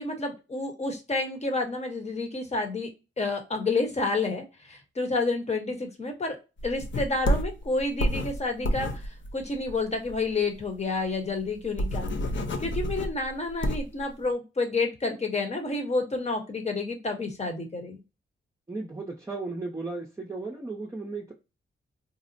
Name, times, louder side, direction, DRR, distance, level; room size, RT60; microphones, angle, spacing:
voice 1, 0.0-2.9 3.2-6.4 6.6-12.1 12.6-18.0, left 3 dB, 30° left, 4 dB, 1.0 m, -29 dB
sound 1, 6.6-10.3 10.6-10.7 11.0-11.1 11.5-14.0, equal, 60° left, 0.6 m, -29 dB
voice 2, 18.7-21.3, right 3 dB, 15° right, -1 dB, 0.6 m, -35 dB
4.0 x 2.0 x 2.6 m, 0.28 s
cardioid pair, 100°, 21 cm